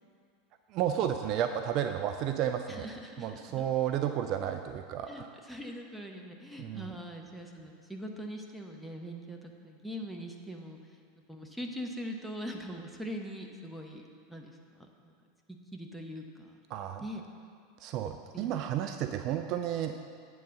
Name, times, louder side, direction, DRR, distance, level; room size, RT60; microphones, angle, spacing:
voice 1, 0.7-2.9 3.2-5.3 6.6-6.9 16.7-17.0 17.8-19.9, right 10 dB, 45° right, 7 dB, 0.3 m, -32 dB
voice 2, 2.7-3.7 5.1-10.8 11.3-14.0 14.3-15.1 15.7-16.6 17.0-17.2 18.3-18.7, equal, ahead, 1 dB, 0.9 m, -42 dB
8.5 x 3.9 x 6.4 m, 2.3 s
figure-of-eight pair, 85°, 0 cm